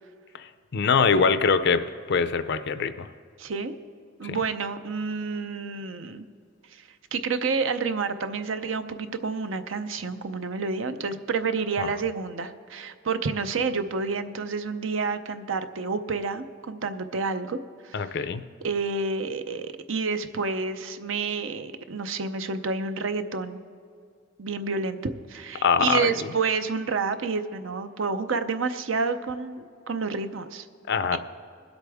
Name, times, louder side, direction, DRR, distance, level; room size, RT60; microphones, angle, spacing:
voice 1, 0.3-1.8 2.1-3.1 4.2-4.4 11.8-11.9 17.9-18.4 25.6-26.1 30.9-31.2, left 5 dB, 55° left, 11 dB, 0.5 m, -23 dB
voice 2, 3.4-3.8 4.2-6.3 6.7-6.8 7.1-17.6 17.8-18.3 18.6-23.6 24.4-30.7 31.1-31.2, right 4 dB, 70° right, 10 dB, 0.6 m, -29 dB
21.5 x 8.1 x 3.5 m, 2.3 s
head